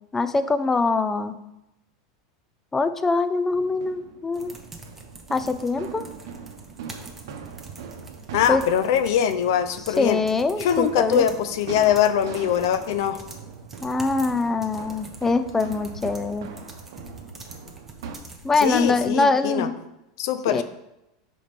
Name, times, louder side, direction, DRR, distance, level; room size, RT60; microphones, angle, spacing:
voice 1, 0.1-1.4 2.7-4.6 5.3-6.1 8.5-8.6 10.0-11.2 13.8-16.5 18.4-19.7 20.5-20.6, left 3 dB, 15° left, 11 dB, 0.4 m, -23 dB
sound 1, 3.5-18.2, right 6 dB, 75° right, 0.8 m, -41 dB
sound 2, 4.3-19.1, right 2 dB, 10° right, 1.0 m, -45 dB
voice 2, 8.3-10.2 10.6-13.2 18.6-19.7 20.2-20.6, left 9 dB, 70° left, 11 dB, 0.5 m, -22 dB
5.0 x 4.3 x 5.1 m, 0.90 s
hypercardioid pair, 110°, 2 cm